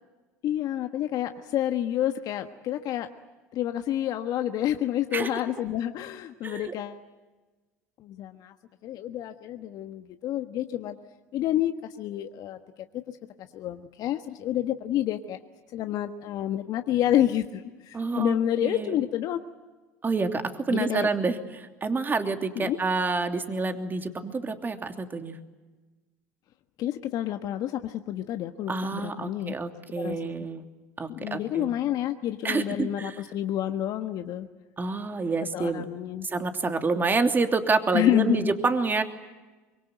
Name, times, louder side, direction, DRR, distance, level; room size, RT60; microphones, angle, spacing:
voice 1, 0.4-3.1 3.5-7.0 8.0-8.5 8.8-11.0 11.3-12.6 13.4-15.4 15.7-19.4 20.7-21.1 22.6-22.8 26.8-29.5 30.0-30.3 31.1-34.5 35.5-36.3 37.9-38.5, left 12 dB, 55° left, 7 dB, 1.4 m, -29 dB
voice 2, 6.4-6.7 17.9-19.0 20.0-25.4 28.7-30.6 31.0-31.7 32.4-33.2 34.8-35.8 36.2-39.0, right 4 dB, 25° right, 6 dB, 3.0 m, -28 dB
25.0 x 23.0 x 9.3 m, 1.2 s
hypercardioid pair, 75°, 8 cm